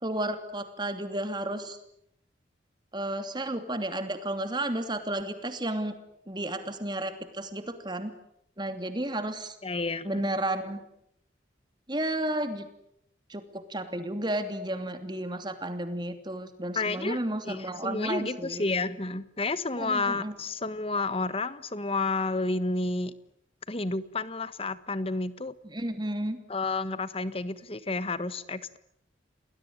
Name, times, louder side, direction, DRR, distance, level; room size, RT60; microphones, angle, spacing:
voice 1, 0.0-1.8 2.9-5.9 6.3-8.1 8.6-9.5 10.0-10.8 11.9-12.7 13.3-18.6 19.8-20.3 25.7-26.4, right 1 dB, 25° right, 9 dB, 2.8 m, -32 dB
voice 2, 9.6-10.3 16.7-17.2 17.4-23.1 23.7-25.5 26.5-28.8, left 3 dB, 30° left, 15 dB, 1.4 m, -30 dB
29.0 x 20.5 x 9.7 m, 0.74 s
head